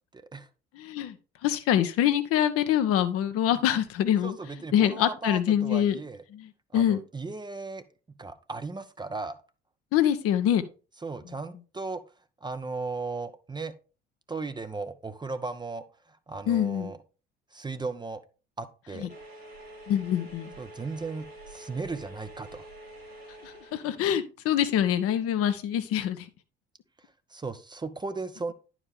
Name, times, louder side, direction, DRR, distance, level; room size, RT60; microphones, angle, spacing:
voice 1, 0.1-0.5 4.2-6.3 6.7-7.8 8.2-9.4 11.0-12.0 12.4-13.7 14.3-17.0 17.5-18.2 18.6-19.1 20.6-22.7 27.0-28.5, right 3 dB, 15° right, 0.7 m, -36 dB
voice 2, 0.8-1.1 1.4-4.4 4.7-6.0 6.3-6.4 6.7-7.0 9.9-10.6 16.5-16.9 19.9-20.5 23.4-26.2, left 10 dB, 50° left, 0.9 m, -25 dB
sound 1, 19.1-24.1, right 1 dB, 90° right, 2.6 m, -47 dB
11.0 x 4.9 x 3.6 m
figure-of-eight pair, 55°, 30 cm